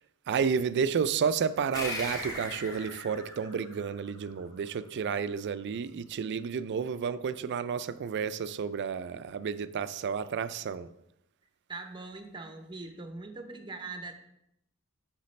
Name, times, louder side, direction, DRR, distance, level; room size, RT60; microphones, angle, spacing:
voice 1, 0.3-10.9, right 6 dB, 50° right, 14 dB, 0.3 m, -31 dB
sound 1, 1.7-4.7, left 1 dB, 15° left, 2.5 m, -39 dB
voice 2, 11.7-14.1, right 3 dB, 20° right, 6 dB, 0.7 m, -41 dB
8.1 x 5.8 x 3.2 m, 0.81 s
head